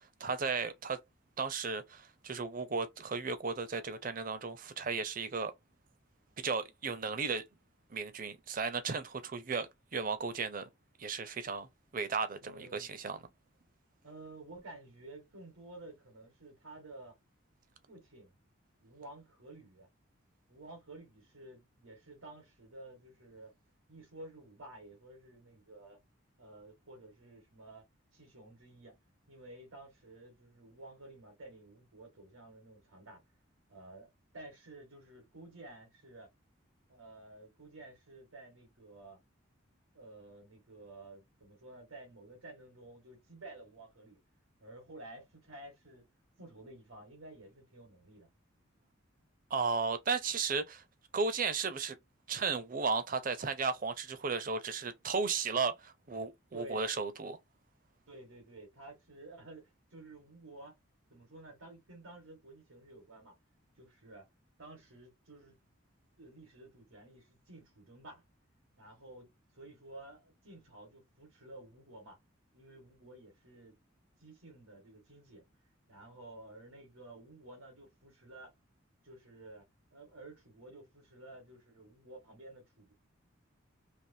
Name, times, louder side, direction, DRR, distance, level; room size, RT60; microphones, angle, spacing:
voice 1, 0.2-1.0 1.4-5.5 6.4-7.4 7.9-10.6 11.0-11.7 11.9-13.2 49.5-50.8 51.1-52.0 52.3-57.4, right 4 dB, 40° right, 0.6 m, -34 dB
voice 2, 12.4-12.9 14.0-17.2 17.9-18.4 18.8-19.9 20.5-23.5 23.9-26.0 26.4-27.8 28.1-29.0 29.3-33.2 33.7-36.3 36.9-39.2 39.9-44.2 44.6-46.0 46.4-48.3 56.5-56.9 58.1-60.7 61.1-63.4 63.8-64.3 64.6-65.6 66.2-68.2 68.8-72.2 72.5-73.7 74.2-75.5 75.9-78.5 79.0-79.7 79.9-82.9, right 2 dB, 90° right, 1.7 m, -52 dB
3.5 x 2.9 x 2.7 m
head